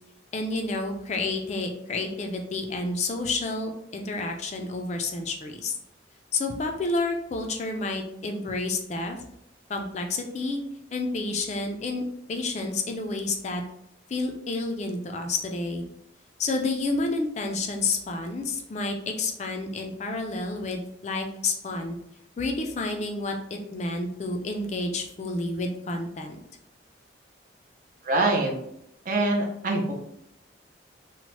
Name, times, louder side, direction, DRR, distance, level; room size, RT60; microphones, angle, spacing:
voice 1, 0.3-5.7 6.3-9.2 9.7-10.6 10.9-12.0 12.3-13.6 14.1-15.9 16.4-22.0 22.4-26.4, left 3 dB, 35° left, 3 dB, 0.3 m, -30 dB
voice 2, 28.0-28.5 29.1-29.9, right 2 dB, 45° right, 1 dB, 0.5 m, -24 dB
2.9 x 2.1 x 3.0 m, 0.75 s
head